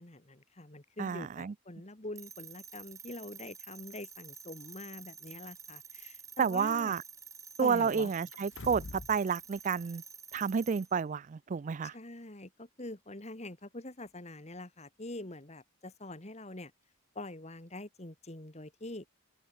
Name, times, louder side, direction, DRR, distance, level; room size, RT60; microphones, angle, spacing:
voice 1, 0.0-7.0 7.6-8.3 11.8-16.7 17.2-19.0, left 2 dB, 30° left, 1.9 m, -45 dB
voice 2, 1.0-1.5 6.4-7.0 7.6-10.0 10.3-11.9, right 6 dB, 35° right, 0.3 m, -30 dB
sound 1, 2.2-11.0, right 6 dB, 15° right, 1.2 m, -50 dB
sound 2, 8.3-9.2 9.5-9.6, left 3 dB, 55° left, 0.7 m, -44 dB
open air
head